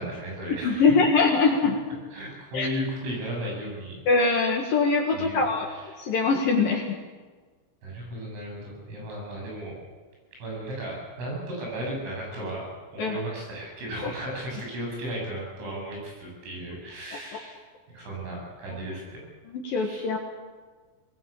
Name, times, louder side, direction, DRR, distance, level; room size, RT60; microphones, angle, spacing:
voice 1, 0.0-0.9 1.5-1.7 2.1-4.0 5.1-6.1 7.8-9.8 10.4-17.6 17.9-19.2 19.7-20.1, right 1 dB, 75° right, -1 dB, 10.0 m, -35 dB
voice 2, 0.6-1.8 2.5-2.7 4.1-5.7 6.0-7.0 13.0-13.2 14.0-14.1 19.5-20.2, left 4 dB, 60° left, 2 dB, 2.9 m, -22 dB
21.0 x 20.5 x 8.6 m, 1.4 s
omnidirectional pair, 5.8 m